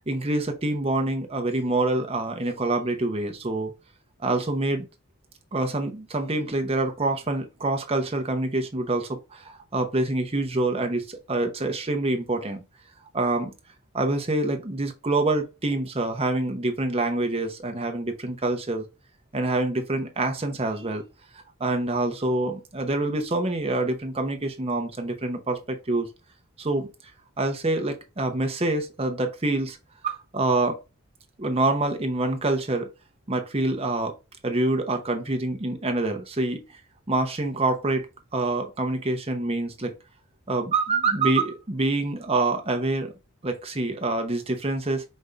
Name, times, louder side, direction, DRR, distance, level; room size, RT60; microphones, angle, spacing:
voice 1, 0.1-3.7 4.2-4.9 5.5-12.6 13.1-13.5 13.9-18.9 19.3-21.1 21.3-26.1 26.6-26.9 27.4-29.8 30.0-30.8 31.4-32.9 33.3-34.1 34.4-36.6 37.1-38.1 38.3-39.9 40.5-43.1 43.4-45.0, right 2 dB, 25° right, 0.8 m, -26 dB
5.2 x 2.6 x 3.3 m
head